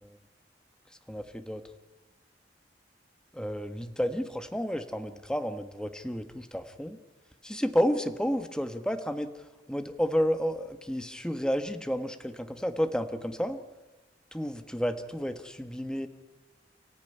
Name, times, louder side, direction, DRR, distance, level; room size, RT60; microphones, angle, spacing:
voice 1, 1.1-1.6 3.3-7.0 7.4-9.3 9.7-13.6 14.3-16.1, equal, 5° left, 8 dB, 1.3 m, -31 dB
29.0 x 14.5 x 9.9 m, 1.2 s
head